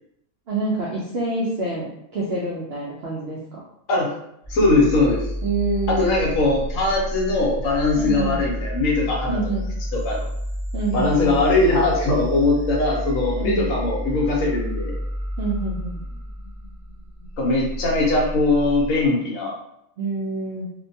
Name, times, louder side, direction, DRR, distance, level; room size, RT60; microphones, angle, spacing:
voice 1, 0.5-3.4 5.4-6.3 7.9-8.4 9.3-9.7 10.7-11.4 13.4-13.7 15.4-16.0 20.0-20.7, right 2 dB, 70° right, -5 dB, 0.6 m, -27 dB
sound 1, 4.4-19.1, equal, 30° left, 0.8 m, -30 dB
voice 2, 4.5-5.2 5.9-9.4 9.9-10.2 10.9-14.9 17.4-19.5, left 2 dB, 65° left, -2 dB, 1.0 m, -20 dB
2.5 x 2.1 x 2.6 m, 0.77 s
omnidirectional pair, 1.5 m